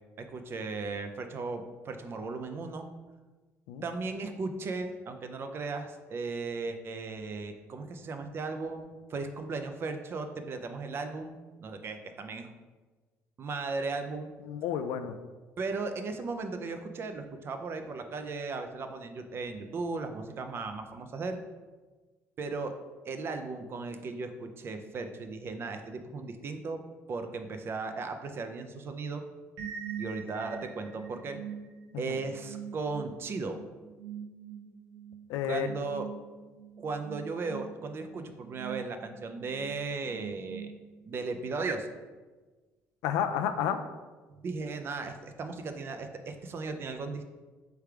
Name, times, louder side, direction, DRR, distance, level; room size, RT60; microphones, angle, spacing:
voice 1, 0.2-2.9 3.8-11.3 11.6-12.5 13.4-14.3 15.6-21.4 22.4-22.8 23.0-26.8 27.1-29.2 30.0-31.4 32.0-33.6 35.5-36.0 36.8-40.7 41.0-41.9 44.3-47.3, right 3 dB, 45° right, 7 dB, 0.5 m, -36 dB
voice 2, 14.4-15.2 31.9-32.1 35.3-35.7 43.0-43.9, left 9 dB, 85° left, 9 dB, 0.3 m, -31 dB
sound 1, 29.6-41.2, right 8 dB, 80° right, 0.7 m, -44 dB
3.3 x 3.3 x 4.7 m, 1.3 s
cardioid pair, 90°, 6 cm